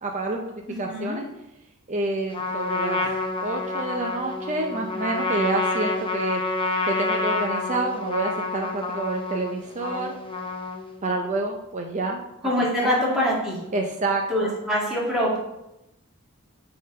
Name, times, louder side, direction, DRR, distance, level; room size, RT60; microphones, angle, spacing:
voice 1, 0.0-0.5 0.8-1.3 1.9-3.1 3.4-10.1 11.0-12.2 12.6-13.3 13.7-14.5, right 2 dB, 35° right, 2 dB, 0.6 m, -28 dB
voice 2, 0.9-1.2 12.4-13.6 14.3-15.4, equal, ahead, -7 dB, 2.3 m, -24 dB
Trumpet, 2.3-11.0, left 3 dB, 25° left, 0.7 m, -28 dB
7.4 x 3.9 x 5.2 m, 0.88 s
head